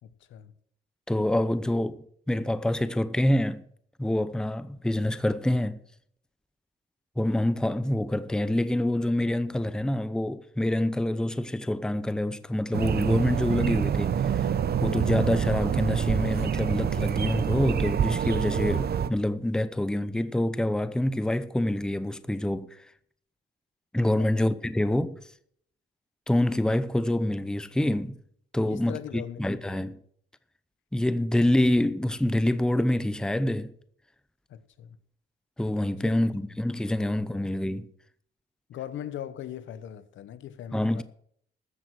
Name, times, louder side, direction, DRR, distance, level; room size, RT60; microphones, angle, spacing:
voice 1, 0.0-0.5 24.2-24.3 28.7-29.8 34.5-35.0 36.0-36.1 36.5-36.6 37.0-37.5 38.7-41.0, left 10 dB, 75° left, 1.1 m, -40 dB
voice 2, 1.1-3.6 4.0-5.8 7.2-14.5 14.8-22.8 23.9-25.2 26.3-28.2 28.5-30.0 30.9-33.7 35.6-37.9 40.7-41.0, left 1 dB, 5° left, 0.7 m, -26 dB
sound 1, 12.7-19.1, right 8 dB, 50° right, 0.9 m, -26 dB
14.0 x 7.6 x 6.4 m
cardioid pair, 90°, 20 cm